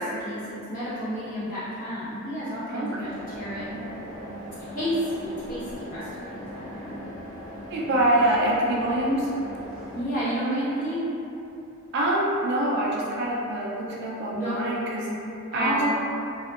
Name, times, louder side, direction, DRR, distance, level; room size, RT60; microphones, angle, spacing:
voice 1, 0.0-3.8 4.7-7.0 9.9-11.1 14.3-14.5 15.5-15.9, equal, 35° left, -12 dB, 0.9 m, -30 dB
voice 2, 2.7-3.1 7.7-9.3 11.9-15.1 15.5-15.9, right 1 dB, 50° right, -4 dB, 0.3 m, -25 dB
sound 1, 3.0-10.0, equal, 20° right, 0.9 m, -39 dB
2.6 x 2.1 x 2.3 m, 2.7 s
head